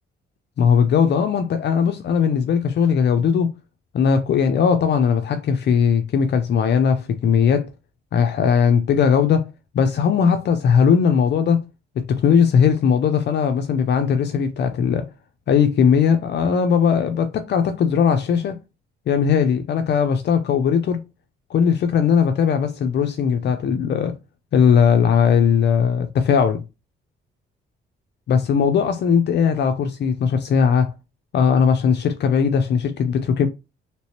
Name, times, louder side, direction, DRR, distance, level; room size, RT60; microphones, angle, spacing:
voice 1, 0.6-3.5 3.9-7.7 8.1-9.5 9.7-11.6 12.0-15.1 15.5-18.6 19.1-21.0 21.5-24.1 24.5-26.6 28.3-30.9 31.3-33.5, left 7 dB, 60° left, 0.5 m, -18 dB
3.3 x 3.0 x 2.8 m
cardioid pair, 90°, 20 cm